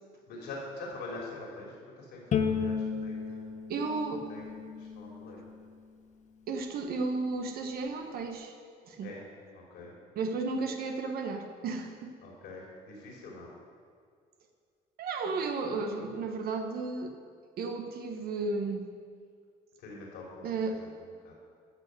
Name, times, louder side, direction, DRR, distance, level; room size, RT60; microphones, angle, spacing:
voice 1, 0.3-3.5 4.3-5.5 9.0-9.2 9.5-9.9 12.2-13.5 19.8-20.5 21.0-21.3, left 2 dB, 80° left, -3 dB, 3.8 m, -44 dB
Bowed string instrument, 2.3-5.5, left 6 dB, 45° left, 1.1 m, -33 dB
voice 2, 3.7-4.3 6.5-8.5 8.9-9.2 10.2-12.1 15.0-17.2 17.6-18.8 20.4-20.8, right 3 dB, 65° right, 4 dB, 1.4 m, -33 dB
14.0 x 6.8 x 6.8 m, 2.1 s
cardioid pair, 110°, 17 cm